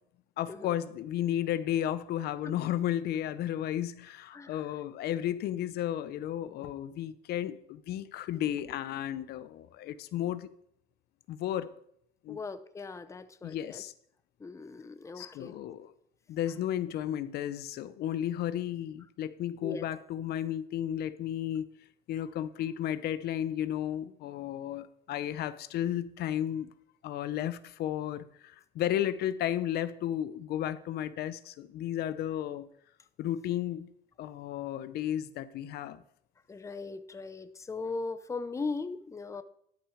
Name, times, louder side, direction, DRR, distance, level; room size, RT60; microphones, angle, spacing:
voice 1, 0.4-10.5 11.3-11.7 12.2-12.4 13.4-13.9 15.2-15.9 16.3-21.7 22.1-26.7 27.0-32.7 33.2-33.9 34.2-36.0, left 11 dB, 70° left, 14 dB, 0.6 m, -33 dB
voice 2, 4.3-4.7 12.3-13.8 14.4-15.6 19.6-19.8 36.5-39.4, left 4 dB, 20° left, 11 dB, 0.6 m, -39 dB
11.5 x 6.0 x 4.9 m, 0.70 s
cardioid pair, 110°, 17 cm